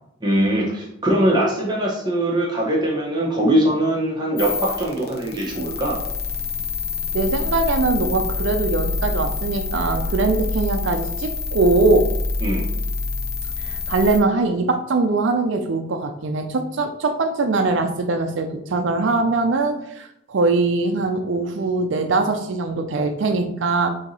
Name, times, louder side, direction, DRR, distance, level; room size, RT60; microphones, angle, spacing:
voice 1, 0.2-6.0 12.4-12.7, right 1 dB, 20° right, -3 dB, 0.7 m, -21 dB
sound 1, 4.4-14.2, left 3 dB, 50° left, 0.7 m, -26 dB
voice 2, 7.1-12.1 13.6-23.9, right 3 dB, 65° right, 6 dB, 0.4 m, -21 dB
4.4 x 2.8 x 4.0 m, 0.79 s
head